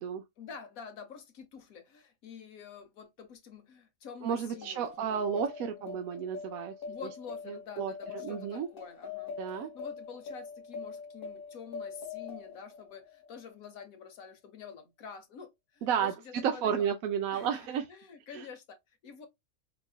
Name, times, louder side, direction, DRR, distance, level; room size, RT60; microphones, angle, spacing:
voice 1, 0.4-5.4 5.8-6.0 6.9-16.9 17.3-19.3, left 6 dB, 75° left, 1.3 m, -48 dB
voice 2, 4.2-6.7 7.5-7.9 8.2-8.7 9.4-9.7 15.8-17.8 18.3-18.4, right 8 dB, 80° right, 1.0 m, -32 dB
sound 1, 4.5-13.5, left 5 dB, 40° left, 1.3 m, -43 dB
4.7 x 2.5 x 2.2 m
omnidirectional pair, 1.5 m